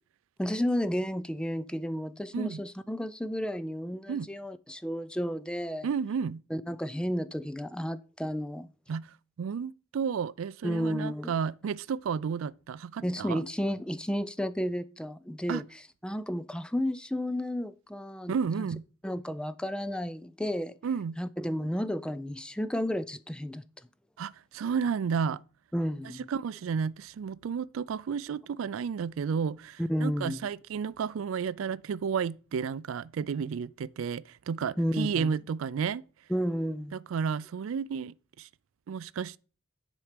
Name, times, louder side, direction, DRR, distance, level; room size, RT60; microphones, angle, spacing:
voice 1, 0.4-5.9 6.5-8.7 10.6-11.3 13.0-15.6 16.0-18.7 19.0-20.8 21.2-23.6 25.7-26.3 29.8-30.5 34.8-35.4 36.3-37.0, equal, 5° left, 0.4 m, -32 dB
voice 2, 5.8-6.4 8.9-13.4 15.5-15.6 18.3-18.8 20.8-21.2 24.2-25.4 26.3-36.0 36.9-38.5 38.9-39.4, right 6 dB, 75° right, 0.4 m, -32 dB
10.0 x 4.6 x 5.1 m
head